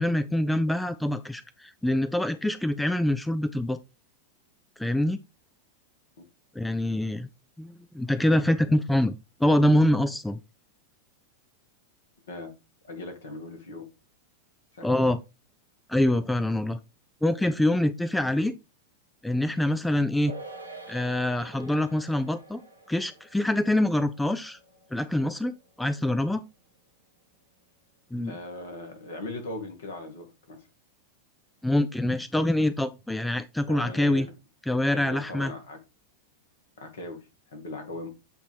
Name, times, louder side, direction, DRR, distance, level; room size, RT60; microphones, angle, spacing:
voice 1, 0.0-3.8 4.8-5.2 6.6-7.3 7.6-9.2 9.4-10.4 14.8-15.2 15.9-16.8 17.2-18.6 19.2-20.3 20.9-22.6 22.9-24.6 24.9-26.4 28.1-28.4 31.6-34.3 34.7-35.5, left 1 dB, 5° left, 0.4 m, -25 dB
voice 2, 12.8-13.9 14.7-14.9 28.2-30.7 33.7-34.3 34.9-35.8 36.8-38.1, left 2 dB, 60° left, 1.8 m, -39 dB
sound 1, 20.3-26.9 27.2-27.3, right 2 dB, 85° right, 1.1 m, -48 dB
7.8 x 3.0 x 4.5 m
figure-of-eight pair, 90°, 0 cm